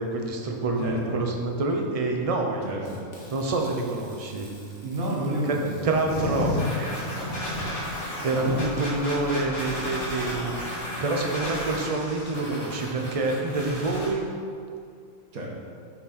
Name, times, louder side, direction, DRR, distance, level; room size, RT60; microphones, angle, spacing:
voice 1, 0.0-2.7 3.3-4.5 5.4-5.6 5.8-6.5 6.8-7.0 8.2-10.5 11.0-14.3, right 2 dB, 30° right, 2 dB, 0.7 m, -27 dB
voice 2, 2.6-3.0 4.8-5.9 8.3-8.6 15.3-15.5, right 1 dB, 90° right, -2 dB, 1.8 m, -29 dB
sound 1, 2.9-9.5, left 1 dB, 40° left, 1.9 m, -53 dB
sound 2, 6.1-14.1, left 1 dB, 80° left, 2.5 m, -32 dB
8.3 x 6.3 x 4.3 m, 2.3 s
omnidirectional pair, 1.5 m